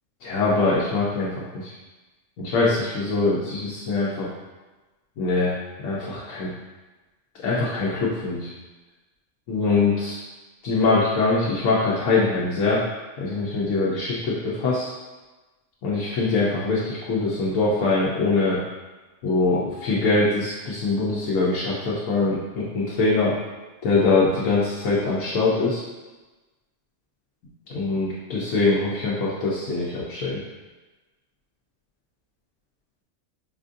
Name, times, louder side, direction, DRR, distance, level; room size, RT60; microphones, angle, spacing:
voice 1, 0.2-1.7 2.4-4.3 5.2-5.6 5.8-6.5 7.4-8.5 9.5-10.2 10.6-12.8 13.2-14.9 15.8-18.6 19.2-23.3 23.8-25.8 27.7-30.4, left 3 dB, 85° left, -6 dB, 1.0 m, -23 dB
5.0 x 2.5 x 2.5 m, 1.2 s
omnidirectional pair, 1.3 m